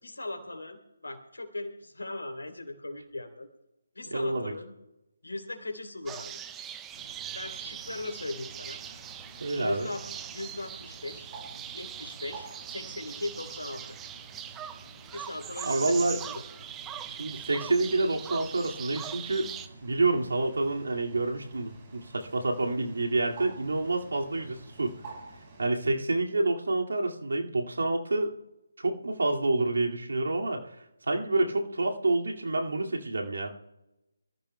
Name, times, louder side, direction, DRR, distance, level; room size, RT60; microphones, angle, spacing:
voice 1, 0.0-3.5 3.9-4.7 5.2-6.4 7.3-8.8 9.6-11.3 11.7-14.0 15.1-16.4, left 2 dB, 80° left, 5 dB, 3.1 m, -38 dB
voice 2, 4.1-4.5 9.4-9.9 15.6-16.2 17.0-19.5 19.8-24.9 25.6-28.3 28.8-30.6 31.1-33.5, right 2 dB, 70° right, 1 dB, 2.2 m, -28 dB
sound 1, 6.1-19.7, right 10 dB, 10° right, 0.5 m, -41 dB
Bird, 6.9-25.7, right 3 dB, 30° right, 4.8 m, -50 dB
26.0 x 14.5 x 2.2 m, 0.99 s
figure-of-eight pair, 150°, 0 cm